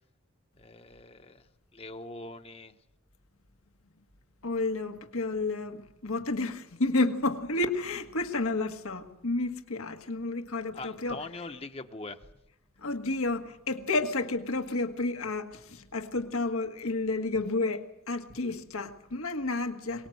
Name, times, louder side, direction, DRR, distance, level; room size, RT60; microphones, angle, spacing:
voice 1, 0.6-1.4 1.7-2.8 10.7-12.2, left 2 dB, 25° left, 1.0 m, -42 dB
voice 2, 4.4-11.2 12.8-20.1, left 2 dB, 80° left, 1.6 m, -31 dB
24.0 x 19.5 x 7.8 m
head